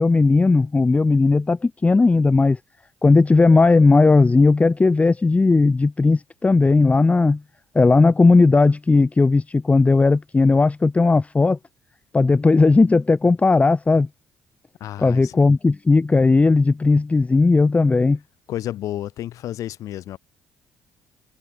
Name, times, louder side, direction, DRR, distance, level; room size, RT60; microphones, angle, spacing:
voice 1, 0.0-2.6 3.0-7.4 7.7-11.6 12.1-14.1 15.0-18.2, left 3 dB, 20° left, 0.6 m, -16 dB
voice 2, 14.8-15.4 18.5-20.2, left 13 dB, 65° left, 0.8 m, -31 dB
hypercardioid pair, 50°, 6 cm